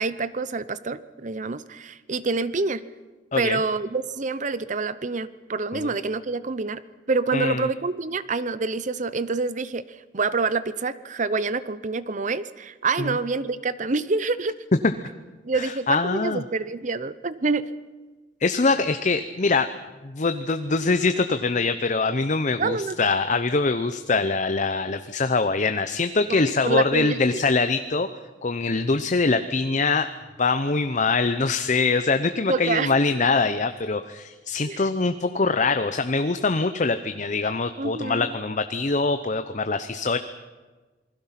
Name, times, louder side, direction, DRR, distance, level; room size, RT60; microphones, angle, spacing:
voice 1, 0.0-2.8 3.4-6.8 7.1-14.6 15.4-17.7 22.6-23.0 26.3-27.2 32.5-32.9 34.7-34.8 37.8-38.3, right 3 dB, 40° right, 15 dB, 0.7 m, -27 dB
voice 2, 7.3-7.7 13.0-13.2 15.5-16.4 18.4-19.7 20.0-28.1 28.4-30.1 30.4-40.2, left 3 dB, 40° left, 10 dB, 0.7 m, -23 dB
27.5 x 21.0 x 5.8 m, 1.3 s
head